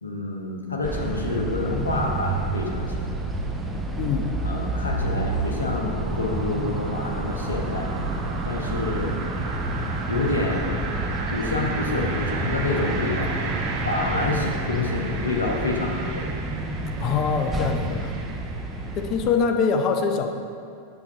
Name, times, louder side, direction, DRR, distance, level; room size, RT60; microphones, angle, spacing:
voice 1, 0.0-3.1 4.4-7.9 8.4-9.2 10.1-10.7 11.3-13.4 13.8-16.3, left 2 dB, 75° left, 0 dB, 0.9 m, -28 dB
sound 1, 0.8-19.3, right 2 dB, 10° right, 0.6 m, -29 dB
sound 2, 2.4-19.0, right 4 dB, 40° right, 0.8 m, -36 dB
voice 2, 4.0-4.3 14.3-14.4 17.0-18.2 19.0-20.3, left 6 dB, 35° left, 5 dB, 0.6 m, -24 dB
8.2 x 6.8 x 2.7 m, 2.3 s
figure-of-eight pair, 90°, 0 cm